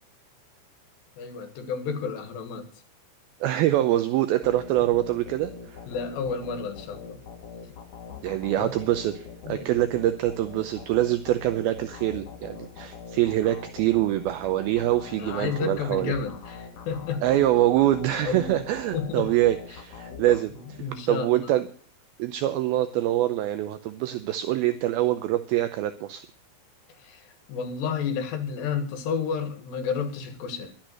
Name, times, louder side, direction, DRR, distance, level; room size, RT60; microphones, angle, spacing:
voice 1, 1.2-2.7 5.9-7.2 8.6-8.7 9.5-9.7 15.1-17.2 18.2-18.6 18.9-19.3 20.8-21.5 27.0-30.7, left 6 dB, 70° left, 7 dB, 3.7 m, -31 dB
voice 2, 3.4-5.8 8.2-16.1 17.2-20.5 21.1-21.7 22.2-26.3, right 14 dB, 80° right, 9 dB, 2.2 m, -24 dB
sound 1, 4.4-21.0, left 6 dB, 55° left, 3.2 m, -43 dB
12.0 x 8.9 x 7.7 m, 0.42 s
omnidirectional pair, 5.2 m